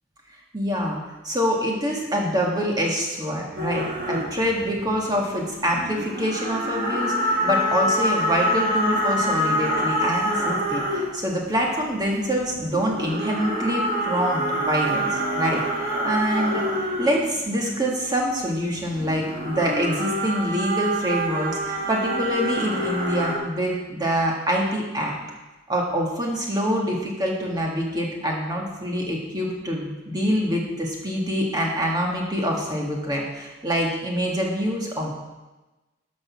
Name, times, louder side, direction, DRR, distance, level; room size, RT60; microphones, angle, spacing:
voice 1, 0.5-1.0 1.2-25.2 25.7-35.1, equal, 20° right, -1 dB, 1.8 m, -25 dB
sound 1, 3.6-5.4 5.6-11.3 12.0-17.7 18.7-23.4, equal, 50° right, 2.0 m, -26 dB
13.5 x 5.4 x 5.9 m, 1.1 s
head